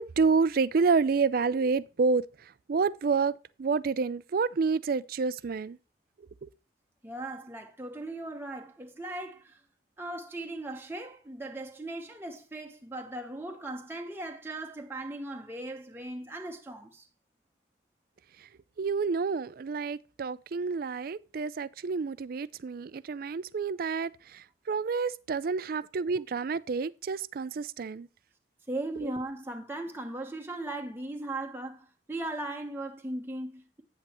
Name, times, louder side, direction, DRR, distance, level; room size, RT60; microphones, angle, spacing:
voice 1, 0.0-5.8 6.4-6.5 18.8-28.1 29.0-29.1, right 4 dB, 55° right, 0.4 m, -29 dB
voice 2, 7.0-9.6 10.0-17.1 28.7-33.8, right 2 dB, 15° right, 1.0 m, -38 dB
8.9 x 8.3 x 3.0 m
head